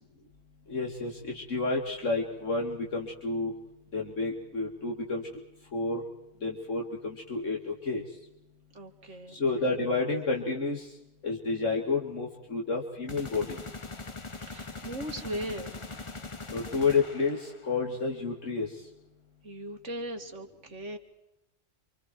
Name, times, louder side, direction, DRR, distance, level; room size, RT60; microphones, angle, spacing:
voice 1, 0.7-3.5 3.9-5.2 5.7-6.0 6.4-8.0 9.3-10.9 11.2-13.6 16.5-18.7, left 3 dB, 70° left, 0 dB, 2.8 m, -30 dB
voice 2, 8.7-9.4 14.4-15.7 19.4-21.0, right 1 dB, 65° right, 4 dB, 2.5 m, -38 dB
sound 1, 13.1-17.8, left 3 dB, 25° left, 1.1 m, -42 dB
28.0 x 26.5 x 4.6 m, 0.89 s
omnidirectional pair, 1.3 m